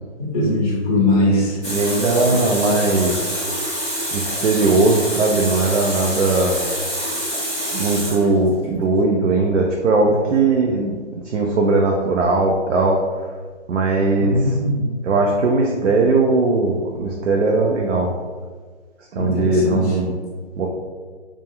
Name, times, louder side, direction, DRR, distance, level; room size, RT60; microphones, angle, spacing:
voice 1, 0.2-1.6 2.2-2.4 14.2-14.8 19.1-20.0, left 2 dB, 30° left, -6 dB, 0.5 m, -20 dB
Water tap faucet, 1.6-8.6, equal, 5° right, 0.8 m, -26 dB
voice 2, 1.7-3.3 4.1-6.6 7.7-11.0 11.2-13.0 13.7-14.6 15.0-18.1 19.1-20.1 20.6-20.7, right 3 dB, 80° right, 0 dB, 0.5 m, -19 dB
2.3 x 2.2 x 2.9 m, 1.5 s
hypercardioid pair, 165°, 36 cm